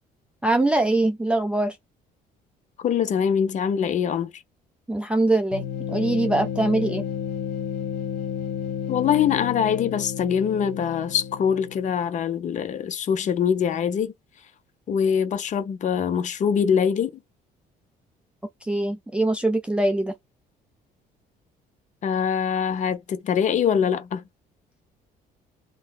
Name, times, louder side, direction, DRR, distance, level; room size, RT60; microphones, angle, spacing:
voice 1, 0.4-1.8 4.9-7.0 18.6-20.1, right 2 dB, 5° right, 0.4 m, -23 dB
voice 2, 2.8-4.4 8.9-14.1 14.9-17.1 22.0-24.2, left 7 dB, 45° left, 0.6 m, -23 dB
sound 1, 5.5-12.1, left 8 dB, 80° left, 1.0 m, -32 dB
2.6 x 2.2 x 3.1 m
cardioid pair, 110°, 17 cm